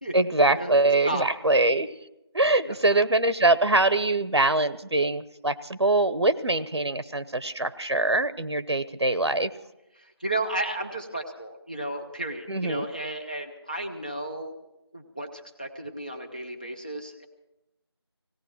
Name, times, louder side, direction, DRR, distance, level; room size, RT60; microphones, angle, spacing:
voice 1, 0.1-1.9 2.3-9.5 12.5-12.9, right 2 dB, 80° right, 13 dB, 0.8 m, -23 dB
voice 2, 10.0-14.6 14.9-17.3, right 1 dB, 20° left, 3 dB, 0.7 m, -33 dB
17.5 x 17.5 x 4.5 m, 0.92 s
figure-of-eight pair, 175°, 14 cm